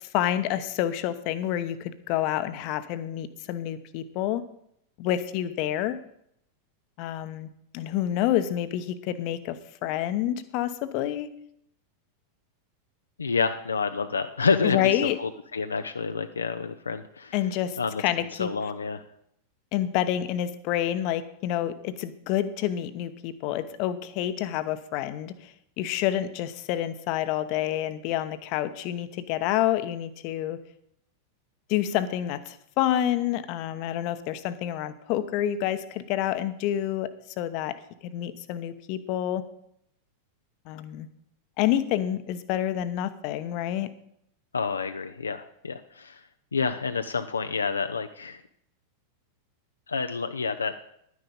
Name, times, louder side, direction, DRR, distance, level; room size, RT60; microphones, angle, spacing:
voice 1, 0.0-4.4 5.0-6.0 7.0-11.3 14.6-15.2 17.3-18.5 19.7-30.6 31.7-37.8 38.0-39.4 40.7-41.1 41.6-43.9, left 12 dB, 45° left, 12 dB, 0.9 m, -28 dB
voice 2, 13.2-14.9 15.2-17.3 17.8-18.0 18.4-19.0 44.5-46.2 46.5-48.4 49.9-50.7, left 5 dB, 75° left, 8 dB, 0.5 m, -28 dB
11.5 x 9.5 x 5.3 m, 0.72 s
figure-of-eight pair, 90°, 0 cm